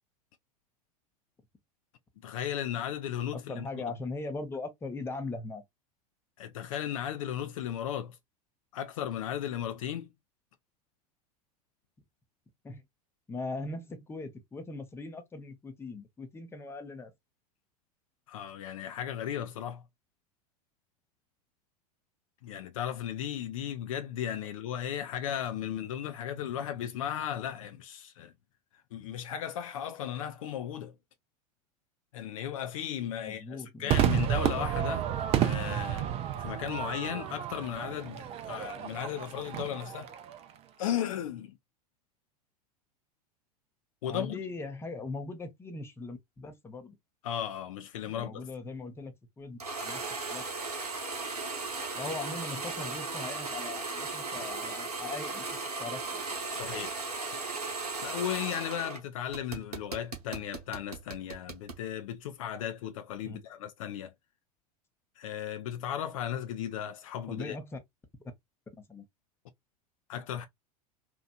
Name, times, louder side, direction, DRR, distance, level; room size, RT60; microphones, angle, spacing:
voice 1, 2.2-3.6 6.4-8.2 8.7-10.1 18.3-19.8 22.4-28.3 28.9-30.9 32.1-35.1 35.3-36.1 36.4-40.1 40.8-41.6 44.0-44.4 47.2-48.3 56.5-57.1 58.0-64.1 65.2-67.6 70.1-70.5, left 10 dB, 60° left, 0.5 m, -35 dB
voice 2, 3.3-5.6 12.6-12.8 13.3-17.1 33.2-34.4 44.1-47.0 48.0-50.0 50.3-50.4 51.9-56.3 63.2-63.4 67.3-67.8 68.8-69.1, left 3 dB, 10° left, 0.7 m, -40 dB
Crowd / Fireworks, 33.9-40.4, right 11 dB, 30° right, 0.5 m, -31 dB
sound 1, 49.6-59.0 59.3-61.8, right 3 dB, 80° right, 1.0 m, -36 dB
2.9 x 2.4 x 2.2 m
figure-of-eight pair, 85°, 20 cm